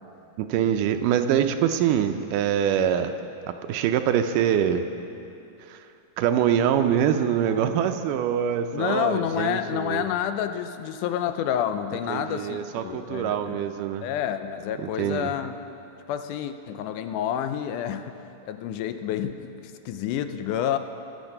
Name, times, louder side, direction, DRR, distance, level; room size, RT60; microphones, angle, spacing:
voice 1, 0.4-3.2 3.5-4.8 5.7-5.9 6.2-10.1 12.1-14.1 14.8-15.3, right 9 dB, 80° right, 8 dB, 2.1 m, -24 dB
voice 2, 8.7-13.6 14.0-15.6 16.1-18.2 18.5-19.5 19.9-20.8, left 10 dB, 80° left, 9 dB, 2.0 m, -29 dB
22.0 x 8.0 x 5.4 m, 2.7 s
omnidirectional pair, 3.8 m